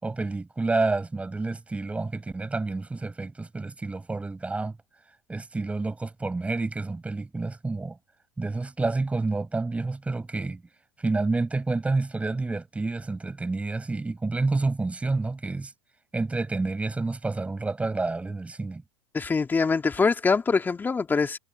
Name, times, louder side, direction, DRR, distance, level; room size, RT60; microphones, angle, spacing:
voice 1, 0.0-4.8 5.3-8.0 8.4-10.6 11.0-15.7 16.1-18.8, right 3 dB, 10° right, 5.7 m, -29 dB
voice 2, 19.1-21.4, left 4 dB, 15° left, 2.9 m, -24 dB
hypercardioid pair, 120°, 14 cm